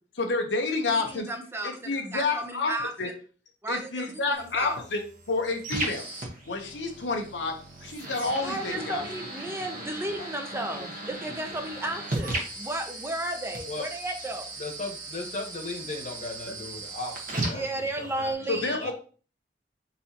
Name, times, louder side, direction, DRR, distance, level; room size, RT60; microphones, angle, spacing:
voice 1, 0.1-1.3 1.6-2.7 3.0-3.1 3.7-6.0 6.5-7.5 7.8-9.0 10.2-10.3 18.5-18.9, left 3 dB, 90° left, 3 dB, 0.9 m, -29 dB
voice 2, 0.9-1.7 2.1-2.9 3.6-4.8 8.4-14.4 17.5-18.9, right 1 dB, 15° right, 4 dB, 0.6 m, -33 dB
sound 1, 4.3-18.3, right 2 dB, 50° right, 1.2 m, -37 dB
voice 3, 14.6-18.9, left 2 dB, 40° left, 2 dB, 1.1 m, -37 dB
4.2 x 4.1 x 2.8 m, 0.39 s
head